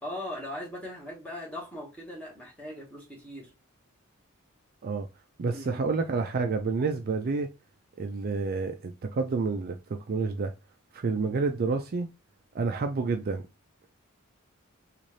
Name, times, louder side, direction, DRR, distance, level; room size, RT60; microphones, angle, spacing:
voice 1, 0.0-3.5 5.5-5.8, left 1 dB, 5° left, 1.4 m, -39 dB
voice 2, 5.4-7.5 8.0-10.5 10.9-12.1 12.5-13.5, right 4 dB, 45° right, 0.4 m, -29 dB
4.0 x 2.5 x 3.1 m
head